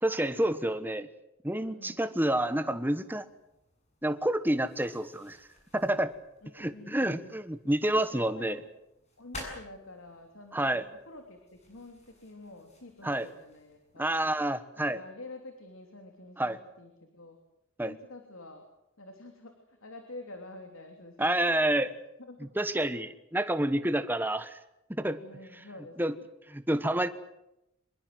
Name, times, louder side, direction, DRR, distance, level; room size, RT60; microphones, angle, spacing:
voice 1, 0.0-1.1 1.4-3.3 4.0-5.5 5.7-6.1 6.6-8.6 10.5-10.8 13.0-13.3 14.0-15.0 16.4-16.6 17.8-17.9 21.2-21.9 22.5-24.6 24.9-25.2 26.0-26.1 26.5-27.1, right 1 dB, 10° right, 11 dB, 1.2 m, -28 dB
voice 2, 1.6-2.1 6.4-7.3 7.9-8.7 9.2-11.4 11.7-14.1 14.7-17.4 17.8-18.7 19.0-21.9 22.2-22.4 25.1-26.3, left 2 dB, 75° left, 4 dB, 3.2 m, -48 dB
sound 1, 2.2-14.1, left 1 dB, 30° left, 7.9 m, -52 dB
25.5 x 21.5 x 7.8 m, 0.87 s
head